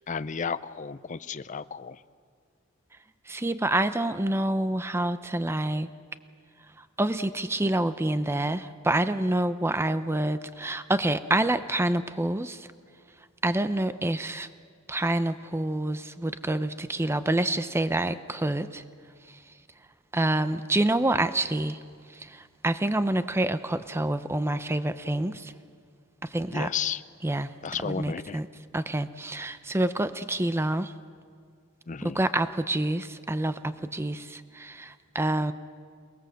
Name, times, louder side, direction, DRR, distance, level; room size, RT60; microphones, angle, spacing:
voice 1, 0.1-2.0 26.5-27.0 27.6-28.4 31.9-32.2, left 6 dB, 35° left, 13 dB, 0.5 m, -33 dB
voice 2, 3.3-5.9 7.0-12.7 13.4-14.5 14.9-18.8 19.3-19.4 20.1-21.8 22.1-25.5 26.2-26.7 27.2-27.5 27.8-28.5 28.7-30.9 32.1-35.5, right 1 dB, 10° right, 11 dB, 0.5 m, -27 dB
28.0 x 19.5 x 7.6 m, 2.1 s
head